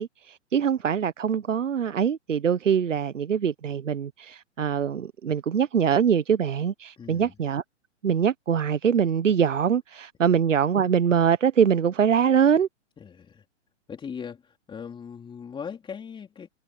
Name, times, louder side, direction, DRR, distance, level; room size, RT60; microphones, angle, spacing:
voice 1, 0.0-7.6 8.0-12.7, right 7 dB, 80° right, 1.1 m, -23 dB
voice 2, 7.0-7.3 13.0-13.4 13.9-16.5, left 7 dB, 15° left, 3.7 m, -39 dB
hypercardioid pair, 125°, 37 cm